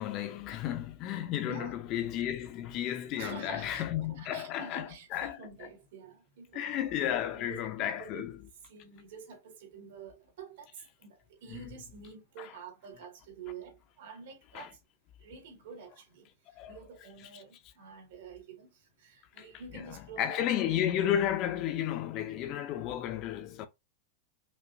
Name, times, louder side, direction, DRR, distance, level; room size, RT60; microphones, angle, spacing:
voice 1, 0.0-5.3 6.5-8.3 11.5-11.6 12.4-12.5 14.5-14.7 16.6-16.8 19.4-19.5 19.7-19.8 20.2-23.7, left 11 dB, 35° left, 0.5 m, -33 dB
voice 2, 1.1-1.8 3.1-3.8 4.1-6.8 7.3-8.3 8.6-14.8 15.2-16.3 16.7-20.7, right 5 dB, 70° right, 2.0 m, -48 dB
5.2 x 2.6 x 2.6 m
supercardioid pair, 165°, 0 cm